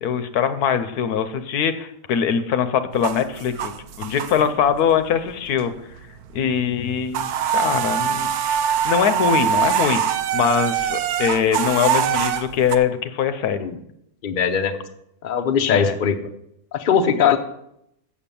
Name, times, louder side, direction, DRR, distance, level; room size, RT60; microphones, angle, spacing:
voice 1, 0.0-3.7 4.0-5.7 6.3-8.3 8.7-10.0 10.3-13.7 15.7-16.0, left 7 dB, 85° left, 10 dB, 1.3 m, -22 dB
sound 1, 2.9-4.7 5.1-6.0 6.2-6.4 6.7-12.8, right 8 dB, 85° right, 1.2 m, -23 dB
voice 2, 14.2-14.7 15.2-16.2 16.7-17.4, left 7 dB, 40° left, 7 dB, 0.8 m, -20 dB
7.3 x 7.2 x 6.9 m, 0.77 s
omnidirectional pair, 1.6 m